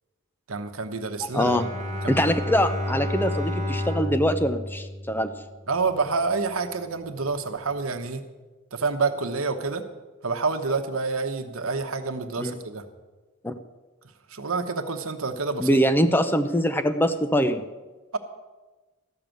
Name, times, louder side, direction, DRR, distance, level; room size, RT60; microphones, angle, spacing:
voice 1, 0.5-1.6 2.0-2.3 5.7-8.2 8.7-9.8 10.2-12.8 14.3-15.8, right 4 dB, 75° right, 7 dB, 1.1 m, -28 dB
voice 2, 1.3-1.7 2.1-5.3 12.4-12.5 13.4-13.5 15.6-17.6, equal, 10° left, 9 dB, 0.5 m, -23 dB
Bowed string instrument, 1.3-5.7, left 1 dB, 35° right, 1.3 m, -31 dB
13.5 x 6.8 x 9.1 m, 1.2 s
head